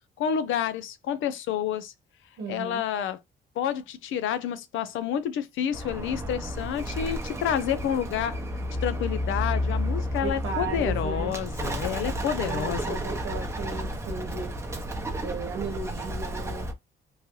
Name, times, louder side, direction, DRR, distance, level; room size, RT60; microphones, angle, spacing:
voice 1, 0.2-1.9 2.5-3.2 3.6-8.4 8.8-13.0, left 9 dB, 80° left, 0.5 m, -29 dB
voice 2, 2.4-2.8 10.2-11.3 12.4-14.5 15.2-16.7, right 4 dB, 75° right, 0.9 m, -35 dB
Bird, 5.7-16.7, equal, 15° right, 0.7 m, -31 dB
3.1 x 2.2 x 3.0 m
cardioid pair, 90°, 20 cm